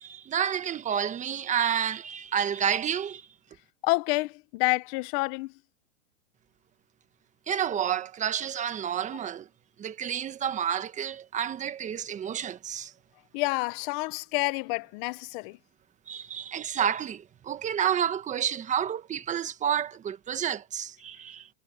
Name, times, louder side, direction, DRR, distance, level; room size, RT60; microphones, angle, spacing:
voice 1, 0.0-3.2 7.5-9.5 9.8-12.9 16.1-21.5, right 9 dB, 20° right, 1.4 m, -30 dB
voice 2, 3.8-5.5 13.3-15.6, left 24 dB, 45° left, 1.0 m, -28 dB
supercardioid pair, 140°, 36 cm